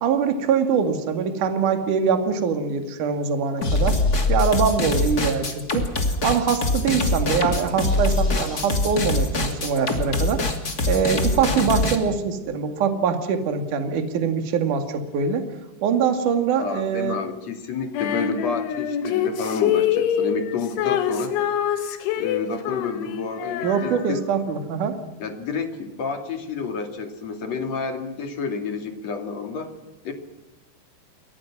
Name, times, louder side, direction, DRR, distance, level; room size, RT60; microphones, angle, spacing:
voice 1, 0.0-4.0 4.3-5.9 6.2-10.4 10.9-15.4 15.8-17.2 23.6-25.0, right 6 dB, 50° right, 6 dB, 3.2 m, -23 dB
sound 1, 3.6-12.0, left 2 dB, 25° left, 2.3 m, -23 dB
voice 2, 16.5-21.3 22.2-24.2 25.2-29.7 30.0-30.1, left 5 dB, 40° left, 5 dB, 3.2 m, -30 dB
Female singing, 17.9-24.4, left 9 dB, 85° left, 4.0 m, -25 dB
29.0 x 24.0 x 6.1 m, 1.0 s
omnidirectional pair, 5.3 m